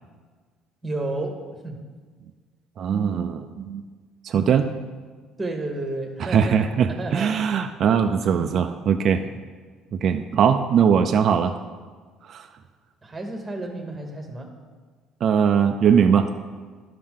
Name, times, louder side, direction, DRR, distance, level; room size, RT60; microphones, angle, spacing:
voice 1, 0.8-1.8 5.4-7.3 8.3-8.5 9.1-9.4 13.0-14.5, right 2 dB, 15° right, 3 dB, 1.2 m, -32 dB
voice 2, 2.8-3.8 4.2-4.7 6.3-9.2 9.9-11.6 12.3-12.5 15.2-16.3, right 7 dB, 50° right, 7 dB, 0.4 m, -20 dB
12.0 x 5.5 x 3.7 m, 1.5 s
cardioid pair, 120°, 0 cm